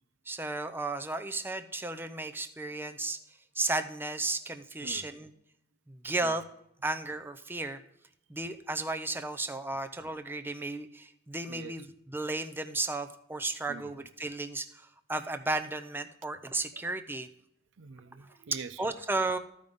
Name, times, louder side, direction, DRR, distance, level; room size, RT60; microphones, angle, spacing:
voice 1, 0.3-3.2 3.5-5.3 5.9-6.4 6.8-7.8 8.3-17.3 18.8-19.4, right 2 dB, 10° right, 8 dB, 0.6 m, -34 dB
voice 2, 17.8-18.9, right 5 dB, 70° right, 15 dB, 0.5 m, -45 dB
14.5 x 5.3 x 3.5 m, 0.77 s
head